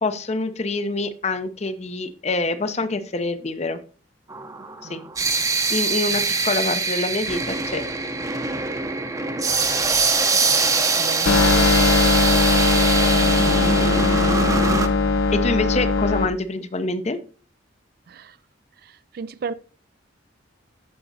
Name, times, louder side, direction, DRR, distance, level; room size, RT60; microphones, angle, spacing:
voice 1, 0.0-3.8 4.9-5.0 5.7-7.8 15.3-17.2, left 3 dB, 35° left, 0.6 m, -26 dB
sound 1, 4.3-14.9, right 4 dB, 15° right, 0.7 m, -23 dB
voice 2, 11.0-11.7 15.3-15.4 18.1-18.4 19.1-19.5, right 5 dB, 50° right, 0.3 m, -33 dB
sound 2, 11.3-16.3, left 3 dB, 85° left, 0.7 m, -19 dB
14.0 x 5.1 x 2.7 m
head